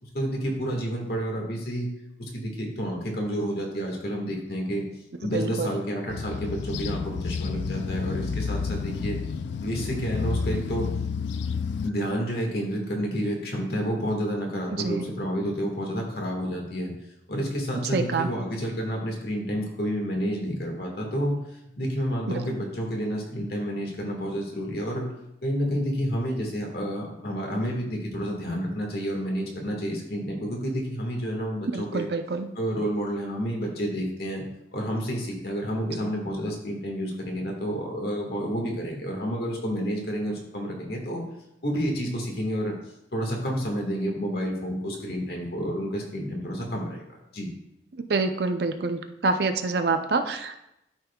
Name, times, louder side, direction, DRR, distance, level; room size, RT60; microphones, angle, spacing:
voice 1, 0.0-1.9 2.2-4.9 5.2-9.2 9.6-10.9 11.8-16.9 17.3-21.4 21.8-25.1 25.4-32.1 32.5-34.4 34.7-41.2 41.6-42.7 43.1-47.0 47.3-47.5, equal, 55° left, 0 dB, 1.7 m, -29 dB
voice 2, 5.3-5.7 14.8-15.0 17.9-18.3 31.7-32.5 48.1-50.5, right 3 dB, 60° right, 7 dB, 0.5 m, -26 dB
sound 1, 6.1-11.9, left 5 dB, 70° left, 0.4 m, -30 dB
12.5 x 5.4 x 2.3 m, 0.84 s
head